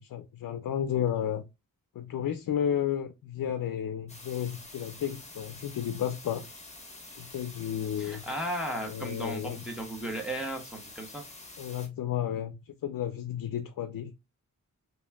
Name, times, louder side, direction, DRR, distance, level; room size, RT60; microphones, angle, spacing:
voice 1, 0.0-1.4 2.0-6.4 7.1-8.2 8.8-9.6 11.6-14.1, left 9 dB, 75° left, 0.5 m, -32 dB
sound 1, 4.1-11.9, left 2 dB, 20° left, 1.4 m, -47 dB
voice 2, 8.0-11.2, equal, 5° right, 1.1 m, -35 dB
4.2 x 3.3 x 2.3 m
cardioid pair, 65°, 34 cm